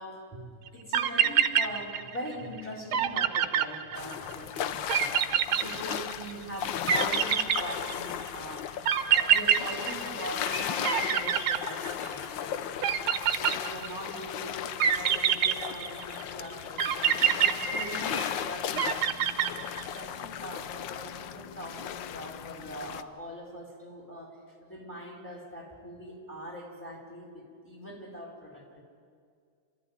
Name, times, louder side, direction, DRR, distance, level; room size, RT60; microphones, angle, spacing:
voice 1, 0.0-5.2 5.5-8.8 9.1-12.7 13.3-19.3 19.9-28.8, equal, 5° left, -1 dB, 4.5 m, -42 dB
sound 1, 0.7-0.8 0.9-2.3 2.6-2.7 2.9-4.3 4.9-6.3 6.9-8.2 8.9-10.5 10.8-12.3 12.8-14.1 14.8-16.2 16.8-18.3 18.8-20.0, right 9 dB, 60° right, 1.3 m, -26 dB
sound 2, 4.0-23.0, left 9 dB, 75° left, 1.4 m, -36 dB
sound 3, 10.2-12.7 17.3-18.4, left 1 dB, 45° left, 6.0 m, -38 dB
27.0 x 14.5 x 9.5 m, 2.2 s
omnidirectional pair, 2.1 m